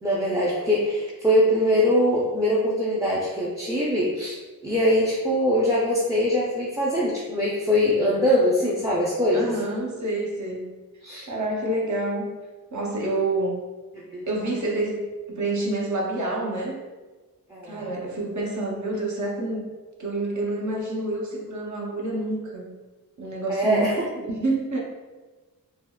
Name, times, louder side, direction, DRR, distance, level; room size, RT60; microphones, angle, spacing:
voice 1, 0.0-4.4 4.6-9.5 11.0-11.3 14.1-14.3 17.5-17.9 23.5-24.1, equal, 10° right, -6 dB, 0.4 m, -22 dB
voice 2, 9.3-10.7 11.2-12.3 12.7-13.6 14.3-16.8 17.6-19.7 20.0-22.7 23.2-23.9 24.2-24.8, right 2 dB, 50° right, -2 dB, 0.7 m, -28 dB
3.5 x 2.2 x 2.2 m, 1.3 s
wide cardioid pair, 90°, 37 cm